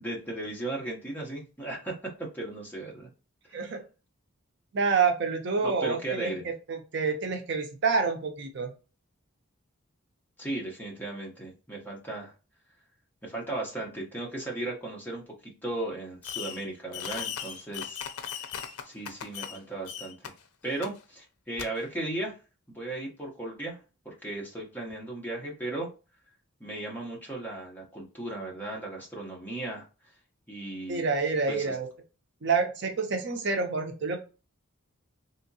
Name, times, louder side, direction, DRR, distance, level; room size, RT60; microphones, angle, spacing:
voice 1, 0.0-3.1 5.6-6.4 10.4-12.3 13.2-18.0 18.8-20.3 20.6-22.3 22.7-23.8 24.0-25.9 26.6-29.8 30.5-31.0 31.5-31.7, right 2 dB, 10° left, -2 dB, 0.9 m, -36 dB
voice 2, 4.7-6.4 6.7-8.7 30.9-31.9 32.4-34.2, right 4 dB, 50° right, 4 dB, 0.5 m, -28 dB
Fireworks, 16.2-16.7 16.9-19.6 19.8-20.3 20.8-20.9 21.6-21.7, left 8 dB, 85° left, 0.5 m, -37 dB
3.4 x 2.8 x 2.7 m, 0.32 s
head